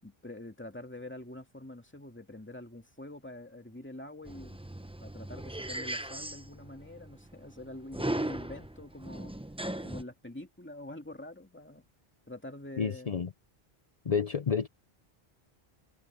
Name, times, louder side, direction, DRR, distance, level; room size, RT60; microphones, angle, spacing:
voice 1, 0.0-4.6 5.0-9.4 9.8-11.9 12.3-13.2, left 1 dB, 10° left, 2.3 m, -45 dB
sound 1, 4.3-10.0, right 1 dB, 5° right, 0.6 m, -38 dB
voice 2, 12.8-13.3 14.0-14.7, left 6 dB, 45° left, 0.6 m, -29 dB
omnidirectional pair, 1.1 m